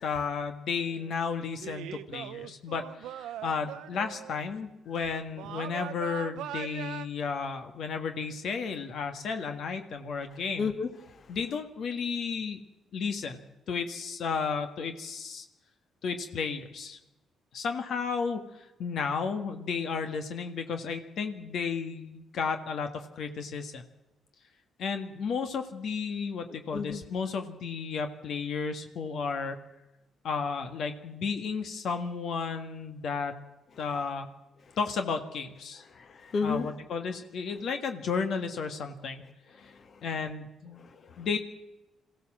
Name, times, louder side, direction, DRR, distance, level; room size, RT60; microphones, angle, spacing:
voice 1, 0.0-10.7 11.3-12.6 12.9-13.4 13.7-15.4 16.0-17.0 17.5-23.8 24.8-29.6 30.2-33.3 33.8-34.3 34.8-35.8 36.4-39.2 39.6-39.7 40.0-40.8 41.2-41.4, left 5 dB, 65° left, 6 dB, 1.7 m, -33 dB
sound 1, 0.8-1.1 1.6-4.4 5.4-7.1, right 12 dB, 90° right, 0.7 m, -41 dB
voice 2, 10.6-11.2 26.7-27.0 35.9-36.7 39.6-40.0 40.8-41.3, left 5 dB, 50° left, 9 dB, 1.7 m, -33 dB
22.0 x 15.5 x 7.5 m, 0.99 s
cardioid pair, 90°, 0 cm